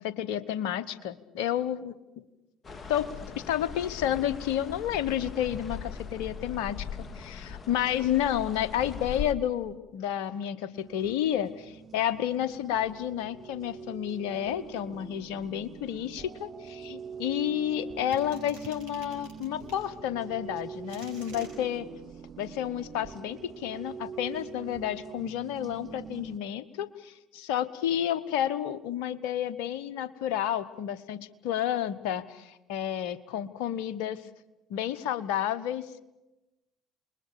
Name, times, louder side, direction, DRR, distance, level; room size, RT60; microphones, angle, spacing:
voice 1, 0.0-1.9 2.9-3.1 3.4-6.9 7.1-21.9 22.4-34.2 34.7-36.0, left 11 dB, 70° left, 16 dB, 1.1 m, -31 dB
sound 1, 2.6-9.3, left 6 dB, 35° left, 1.9 m, -40 dB
sound 2, 10.8-26.4, right 7 dB, 45° right, 0.9 m, -44 dB
sound 3, 18.1-19.9 20.5-21.5, right 4 dB, 80° right, 6.6 m, -49 dB
28.5 x 21.0 x 6.8 m, 0.98 s
hypercardioid pair, 55°, 0 cm